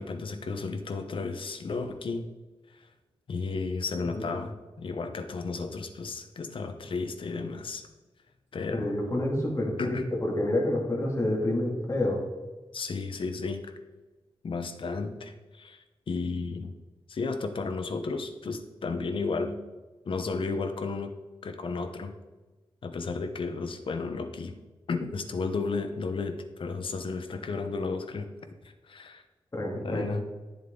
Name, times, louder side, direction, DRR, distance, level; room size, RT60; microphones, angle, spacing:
voice 1, 0.0-2.3 3.3-7.8 8.5-8.9 9.8-10.0 12.7-13.7 14.4-16.7 17.1-19.6 20.1-21.1 21.4-22.1 22.8-24.6 24.9-28.3 28.6-29.2 29.8-30.2, left 4 dB, 60° left, 7 dB, 0.9 m, -33 dB
voice 2, 8.7-10.0 10.2-12.2 29.5-30.0, left 1 dB, 30° left, -2 dB, 2.3 m, -28 dB
11.0 x 7.2 x 3.8 m, 1.2 s
wide cardioid pair, 160°, 10 cm